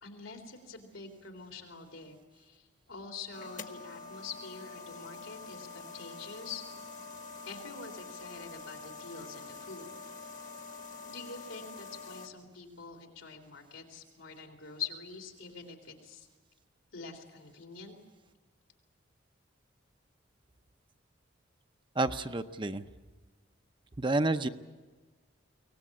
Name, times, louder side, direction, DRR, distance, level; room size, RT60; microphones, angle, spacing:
voice 1, 0.0-6.6 7.4-9.9 11.1-16.3 16.9-18.0, left 5 dB, 90° left, 3 dB, 3.7 m, -45 dB
sound 1, 3.3-12.3, left 3 dB, 40° left, 1.2 m, -46 dB
voice 2, 22.0-22.8 24.0-24.5, right 2 dB, 25° right, 9 dB, 0.6 m, -29 dB
23.5 x 18.5 x 8.5 m, 1.3 s
head